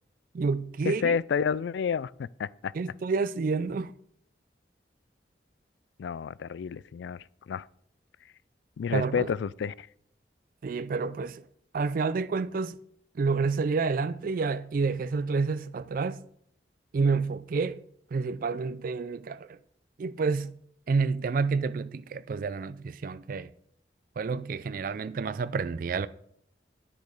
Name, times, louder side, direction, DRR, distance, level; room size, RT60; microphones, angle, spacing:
voice 1, 0.3-1.2 2.7-3.9 8.9-9.3 10.6-11.4 11.7-12.8 13.2-16.2 16.9-17.8 18.1-19.6 20.0-20.5 20.9-23.5 24.2-26.1, right 4 dB, 50° right, 0.3 m, -29 dB
voice 2, 0.9-2.7 6.0-7.7 8.8-9.9, left 6 dB, 85° left, 0.3 m, -30 dB
10.5 x 6.7 x 4.8 m
head